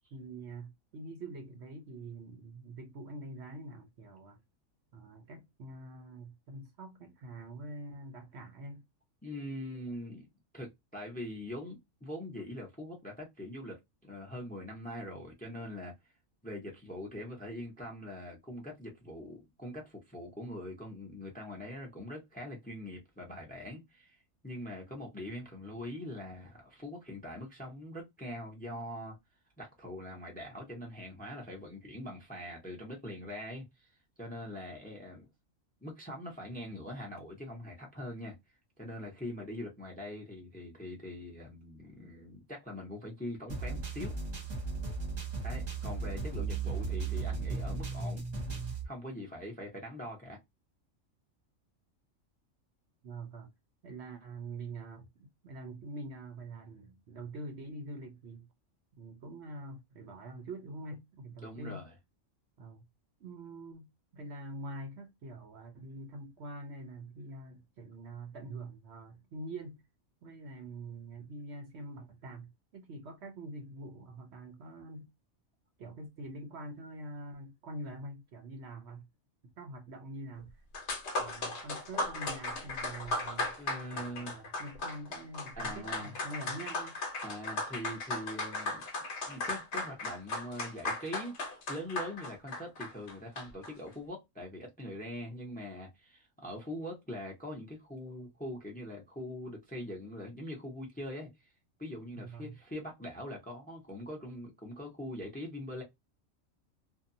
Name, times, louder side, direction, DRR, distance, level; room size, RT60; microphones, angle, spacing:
voice 1, 0.1-4.4 4.9-8.8 53.0-53.5 53.8-58.5 59.0-61.9 62.6-62.8 63.2-69.8 70.2-75.1 75.8-79.0 79.6-80.5 81.2-87.0 102.2-102.6, right 2 dB, 60° right, 0.9 m, -45 dB
voice 2, 9.2-10.3 10.5-15.9 16.4-24.2 24.4-29.2 29.6-33.9 34.2-35.3 35.8-38.4 38.8-44.2 45.4-48.2 48.8-50.4 61.4-61.9 83.6-84.3 85.5-86.2 87.2-88.8 89.3-91.4 91.7-101.5 101.8-105.8, left 1 dB, 10° left, 0.6 m, -43 dB
sound 1, 43.5-48.8, right 4 dB, 35° right, 0.9 m, -36 dB
sound 2, 80.5-80.6 80.7-93.7, left 2 dB, 60° left, 1.0 m, -37 dB
2.7 x 2.2 x 2.5 m
omnidirectional pair, 1.4 m